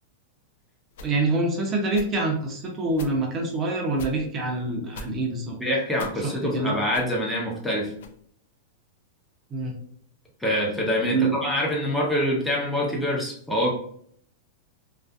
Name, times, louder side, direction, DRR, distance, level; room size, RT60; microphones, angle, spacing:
sound 1, 0.9-1.2 1.9-2.1 2.9-3.2 3.9-4.2 4.9-5.1 5.9-6.2 6.9-7.0 7.9-8.2, left 1 dB, 70° left, 0.4 m, -41 dB
voice 1, 1.0-5.6 6.2-6.7 9.5-9.7 11.1-11.4, right 2 dB, 30° right, 0 dB, 0.6 m, -26 dB
voice 2, 5.6-7.9 10.4-13.7, equal, 5° left, -3 dB, 0.8 m, -25 dB
2.5 x 2.4 x 2.3 m, 0.62 s
hypercardioid pair, 120°, 0 cm